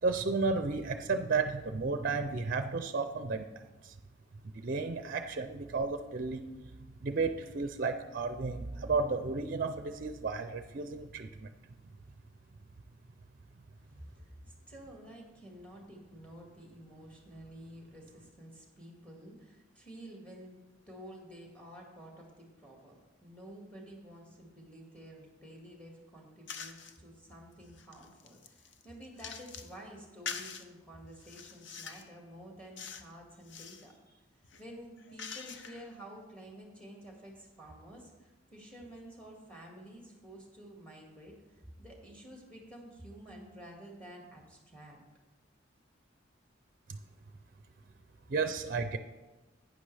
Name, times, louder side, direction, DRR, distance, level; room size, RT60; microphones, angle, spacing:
voice 1, 0.0-3.9 4.4-6.4 7.0-11.5 46.9-47.0 48.3-49.0, right 4 dB, 45° right, 8 dB, 0.5 m, -33 dB
voice 2, 13.9-14.3 14.7-20.6 20.9-34.2 34.6-45.0, right 1 dB, 5° left, 0 dB, 2.0 m, -51 dB
sound 1, 26.5-27.0 27.5-29.8 30.3-30.7 31.2-32.1 32.8-33.1 33.4-33.9 34.4-35.9, left 6 dB, 65° left, 0.6 m, -44 dB
11.5 x 9.1 x 3.4 m, 1.1 s
head